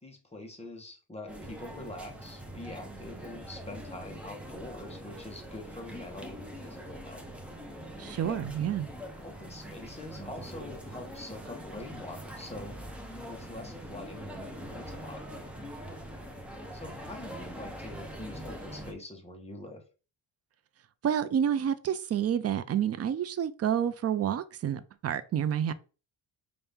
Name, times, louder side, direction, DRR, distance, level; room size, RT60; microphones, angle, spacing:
voice 1, 0.0-7.2 8.2-8.5 9.2-12.8 13.3-15.2 16.7-19.8, left 1 dB, 15° left, 1.1 m, -44 dB
sound 1, 1.3-18.9, equal, 5° right, 0.7 m, -43 dB
voice 2, 8.0-8.9 21.0-25.7, right 9 dB, 35° right, 0.4 m, -29 dB
5.8 x 2.6 x 3.5 m
cardioid pair, 145°, 46 cm